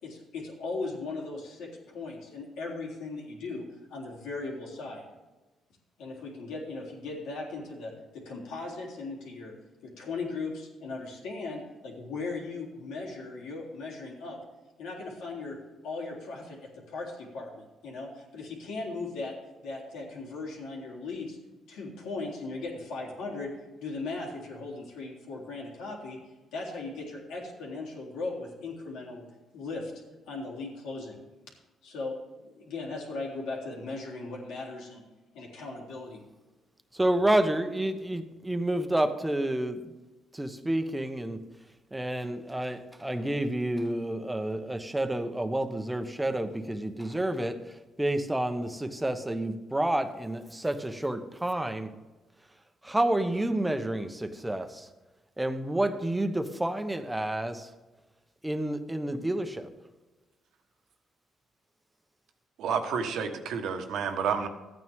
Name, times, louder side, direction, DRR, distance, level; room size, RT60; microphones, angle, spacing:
voice 1, 0.0-5.0 6.0-9.5 9.8-14.4 14.8-15.6 15.8-19.3 19.6-21.4 21.7-23.5 23.8-26.2 26.5-29.2 29.5-29.9 30.3-31.2 31.8-32.2 32.4-35.0 35.3-36.2, left 3 dB, 90° left, -3 dB, 3.7 m, -38 dB
voice 2, 36.9-39.9 40.3-41.4 41.9-51.9 52.8-54.9 55.4-57.7 58.4-59.7, right 1 dB, 10° right, 8 dB, 1.1 m, -29 dB
voice 3, 62.6-64.5, right 6 dB, 80° right, 6 dB, 1.4 m, -30 dB
14.0 x 9.3 x 3.6 m, 1.1 s
cardioid pair, 90°, 0 cm